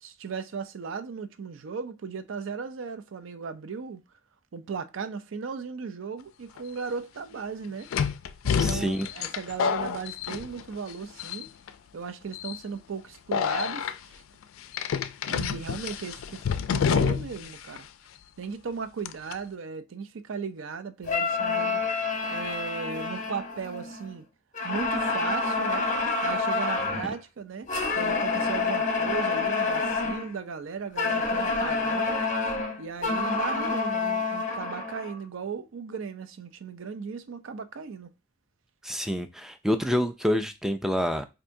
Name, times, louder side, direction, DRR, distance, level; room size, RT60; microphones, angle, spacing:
voice 1, 0.0-4.0 4.5-7.9 8.4-11.5 11.9-14.2 15.3-17.9 18.4-21.8 22.3-24.3 24.6-25.9 26.2-27.7 27.9-32.2 32.8-38.1, right 5 dB, 65° right, 0.4 m, -36 dB
sound 1, 6.6-6.7 7.9-10.9 11.2-11.7 12.3-12.6 13.3-13.9 14.7-17.5 17.7-17.8 19.0-19.3, left 7 dB, 80° left, 0.3 m, -28 dB
voice 2, 8.6-9.1 38.8-41.3, equal, ahead, 0.3 m, -27 dB
sound 2, 21.0-24.1 24.5-27.1 27.7-30.3 31.0-35.2, left 3 dB, 40° left, 0.7 m, -28 dB
4.5 x 2.6 x 2.6 m
head